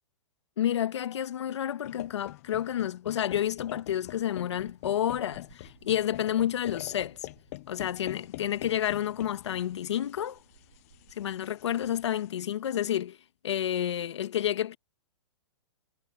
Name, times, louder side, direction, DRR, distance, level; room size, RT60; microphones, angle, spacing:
voice 1, 0.6-7.2 7.7-10.4 11.2-13.2 13.4-14.8, left 11 dB, 70° left, 1.4 m, -30 dB
sound 1, 1.8-12.3, left 18 dB, 30° left, 0.6 m, -45 dB
sound 2, 3.3-11.5, right 9 dB, 75° right, 7.6 m, -61 dB
hypercardioid pair, 170°, 15 cm